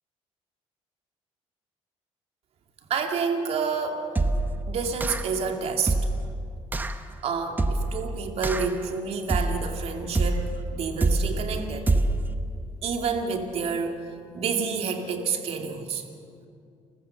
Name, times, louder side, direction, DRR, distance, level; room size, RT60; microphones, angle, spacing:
voice 1, 2.9-4.1 4.7-5.9 7.2-11.9 12.8-14.0 14.3-16.0, right 5 dB, 60° right, 4 dB, 2.5 m, -29 dB
sound 1, 4.1-4.6 5.0-5.4 5.9-6.3 6.7-7.0 7.6-8.0 8.4-8.8 9.3-9.7 10.1-10.6 11.0-11.4 11.9-12.3, right 2 dB, 15° right, 1.0 m, -25 dB
29.0 x 14.5 x 6.9 m, 2.4 s
cardioid pair, 120°, 12 cm